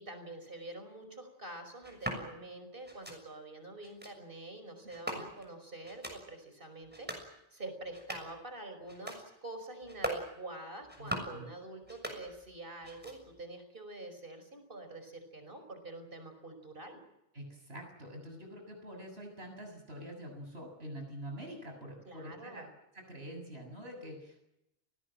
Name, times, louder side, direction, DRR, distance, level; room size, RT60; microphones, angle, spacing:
voice 1, 0.0-17.0 22.0-22.7, right 2 dB, 60° right, 7 dB, 5.6 m, -46 dB
sound 1, 1.8-2.2 2.8-3.2 3.8-4.1 4.9-5.5 5.8-6.2 6.8-7.3 7.8-8.4 8.8-9.2 9.8-10.3 10.8-11.4 11.8-12.6 12.8-13.4, equal, 10° right, 6.5 m, -41 dB
voice 2, 11.0-11.5 17.3-22.7 22.9-24.4, equal, 85° right, 3 dB, 7.6 m, -46 dB
29.0 x 19.5 x 7.7 m, 0.86 s
omnidirectional pair, 1.0 m